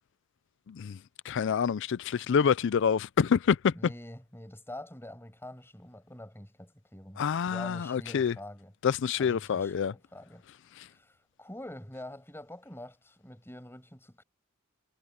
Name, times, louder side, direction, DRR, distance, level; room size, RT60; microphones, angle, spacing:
voice 1, 0.7-1.0 1.2-3.7 7.2-8.3 8.8-9.9 10.8-10.9, left 6 dB, 60° left, 0.4 m, -27 dB
voice 2, 3.7-7.2 7.5-8.7 9.2-10.4 10.9-14.2, left 1 dB, 10° left, 6.1 m, -46 dB
head